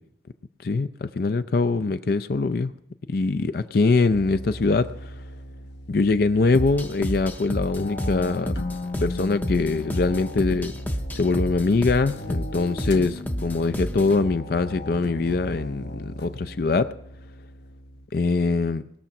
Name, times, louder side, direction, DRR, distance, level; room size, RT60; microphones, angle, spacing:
voice 1, 0.6-2.7 3.1-5.1 5.9-8.6 9.0-10.7 11.1-16.9 18.1-18.8, left 3 dB, 55° left, 11 dB, 0.4 m, -23 dB
sound 1, 4.1-18.1, left 1 dB, 70° left, 1.0 m, -37 dB
sound 2, 6.5-14.2, equal, 10° left, 0.6 m, -31 dB
20.0 x 6.9 x 5.9 m, 0.81 s
head